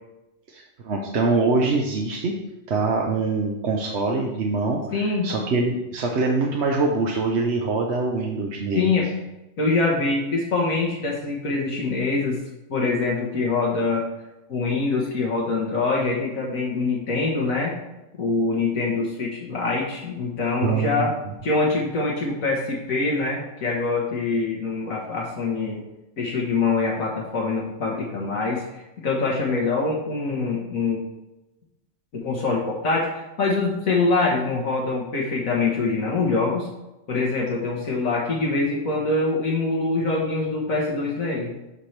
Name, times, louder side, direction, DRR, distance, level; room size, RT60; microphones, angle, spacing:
voice 1, 0.5-2.3 2.7-8.9 20.6-21.1, right 3 dB, 60° right, 0 dB, 1.1 m, -24 dB
voice 2, 4.9-5.3 8.7-9.1 9.6-12.4 12.7-14.1 14.5-17.8 18.2-21.1 21.4-25.8 26.2-28.6 29.0-31.0 32.1-36.7 37.1-41.5, left 3 dB, 85° left, -3 dB, 1.7 m, -24 dB
13.0 x 4.4 x 3.3 m, 0.97 s
omnidirectional pair, 1.4 m